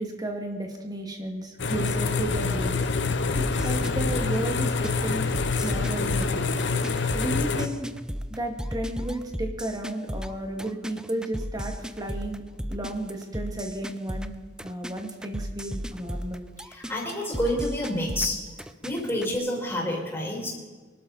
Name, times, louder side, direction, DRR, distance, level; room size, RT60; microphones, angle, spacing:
voice 1, 0.0-2.8 3.3-6.5 7.1-7.9 8.3-12.4 12.7-14.3 14.6-16.4, right 1 dB, 20° right, 3 dB, 2.2 m, -33 dB
sound 1, 1.6-7.7, left 4 dB, 80° left, 1.0 m, -26 dB
sound 2, 3.3-19.3, equal, 5° right, 0.5 m, -35 dB
voice 2, 16.6-18.4 18.8-20.5, left 1 dB, 10° left, -4 dB, 6.1 m, -28 dB
23.0 x 12.0 x 4.2 m, 1.4 s
head